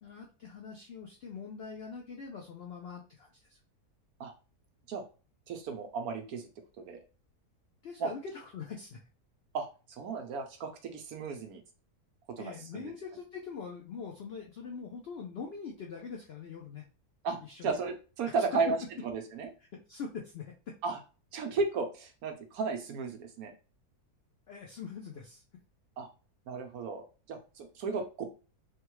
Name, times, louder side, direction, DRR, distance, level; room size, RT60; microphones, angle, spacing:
voice 1, 0.0-3.6 7.8-9.0 12.4-16.9 17.4-17.8 19.7-20.8 24.5-25.4, left 5 dB, 75° left, 0 dB, 0.5 m, -43 dB
voice 2, 5.5-6.5 6.8-7.0 8.0-8.1 9.5-11.6 12.3-12.9 17.2-18.8 19.0-19.5 20.8-21.0 21.3-23.5 26.0-26.1 26.5-28.3, right 4 dB, 70° right, 5 dB, 1.1 m, -34 dB
3.4 x 2.2 x 3.0 m, 0.33 s
omnidirectional pair, 1.7 m